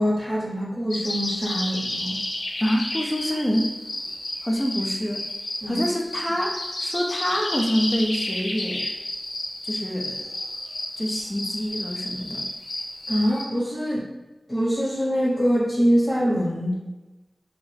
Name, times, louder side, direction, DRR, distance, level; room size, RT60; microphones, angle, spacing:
voice 1, 0.0-2.2 5.6-5.8 13.1-14.1 14.5-16.7, equal, 30° left, -6 dB, 0.9 m, -24 dB
sound 1, 0.9-13.4, left 1 dB, 80° left, 0.5 m, -31 dB
voice 2, 2.6-3.7 4.4-5.3 5.7-8.9 9.6-10.3 11.0-12.5, equal, 15° left, 2 dB, 0.5 m, -26 dB
2.6 x 2.4 x 3.3 m, 1.1 s
wide cardioid pair, 50°, 0 cm